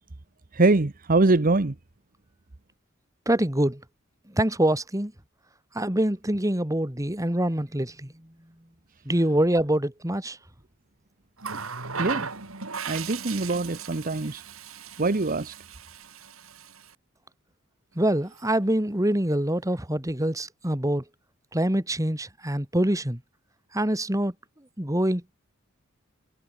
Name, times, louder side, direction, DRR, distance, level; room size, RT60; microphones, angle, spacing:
voice 1, 0.5-1.7 12.0-12.3 12.8-14.4 15.0-15.5, right 2 dB, 45° right, 0.9 m, -23 dB
voice 2, 3.3-3.8 4.3-5.1 5.7-8.1 9.1-10.4 18.0-21.0 21.5-23.2 23.7-24.3 24.8-25.3, right 1 dB, 15° right, 2.6 m, -25 dB
Water tap faucet, 11.4-16.9 18.2-18.4, right 5 dB, 90° right, 3.4 m, -37 dB
head